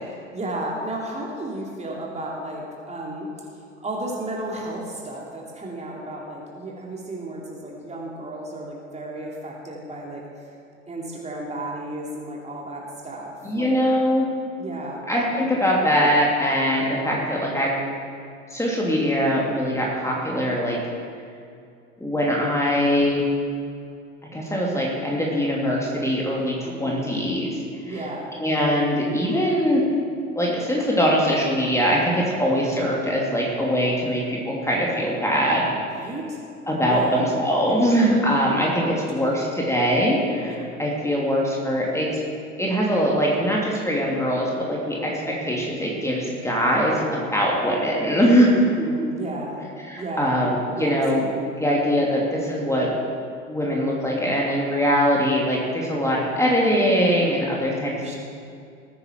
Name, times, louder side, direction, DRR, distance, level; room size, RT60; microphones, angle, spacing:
voice 1, 0.1-10.5 10.9-13.8 14.6-15.0 26.6-27.1 27.8-28.3 35.9-36.4 36.9-37.3 37.6-38.0 39.1-39.6 40.4-40.6 48.5-49.6 49.9-50.3 50.7-51.4 57.9-58.2, right 1 dB, 15° right, -3 dB, 2.8 m, -33 dB
voice 2, 13.4-14.3 15.1-17.8 18.5-20.8 22.0-23.3 24.3-27.6 27.9-28.0 28.4-29.8 30.3-35.6 36.7-40.5 40.8-42.2 42.6-48.5 49.9-51.3 51.6-52.9 53.5-57.9, equal, 5° left, -3 dB, 2.7 m, -22 dB
19.5 x 9.6 x 4.6 m, 2.4 s
figure-of-eight pair, 75°, 38 cm